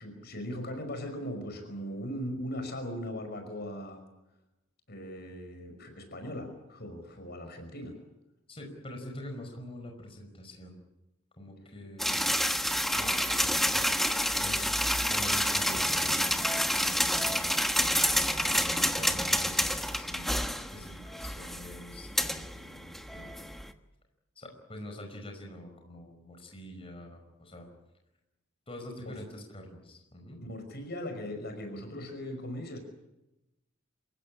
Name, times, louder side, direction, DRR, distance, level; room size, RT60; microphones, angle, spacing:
voice 1, 0.0-4.0 4.9-7.9 29.0-29.2 30.4-32.8, equal, 55° left, 6 dB, 5.4 m, -39 dB
voice 2, 8.5-10.8 11.4-12.3 12.8-14.0 14.4-14.7 15.1-18.0 18.4-23.4 24.4-27.7 28.7-30.4, left 1 dB, 30° left, 2 dB, 5.2 m, -45 dB
sound 1, 12.0-23.7, equal, ahead, 1.3 m, -29 dB
27.5 x 16.0 x 10.0 m, 0.96 s
head